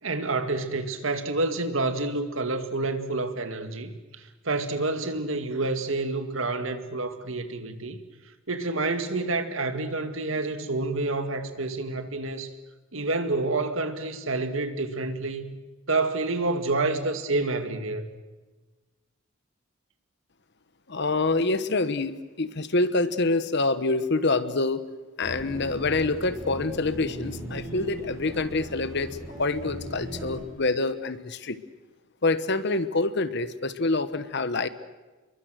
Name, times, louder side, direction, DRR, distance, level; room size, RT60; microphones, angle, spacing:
voice 1, 0.0-8.0 8.5-12.5 12.9-15.5 15.9-18.1, right 3 dB, 75° right, 2.0 m, -28 dB
voice 2, 20.9-24.9 25.2-29.1 29.4-31.6 32.2-34.7, left 3 dB, 55° left, 1.2 m, -26 dB
sound 1, 25.2-30.4, right 1 dB, 15° right, 6.3 m, -39 dB
28.5 x 23.0 x 6.4 m
head